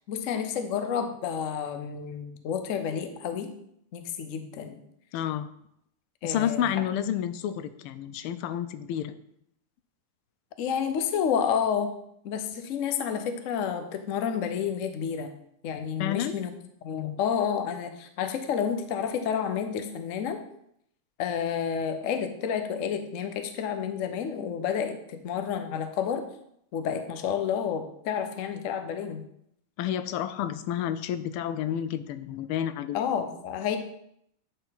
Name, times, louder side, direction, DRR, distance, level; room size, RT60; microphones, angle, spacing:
voice 1, 0.1-3.5 3.9-4.8 6.2-6.6 10.6-11.9 12.2-15.3 15.6-16.5 16.8-20.4 21.2-26.2 26.7-29.2 32.9-33.8, left 7 dB, 75° left, 8 dB, 0.7 m, -30 dB
voice 2, 5.1-5.5 6.2-9.1 16.0-16.3 16.9-17.2 29.8-33.0, left 10 dB, 90° left, 12 dB, 1.5 m, -30 dB
9.8 x 4.4 x 4.0 m, 0.73 s
omnidirectional pair, 2.3 m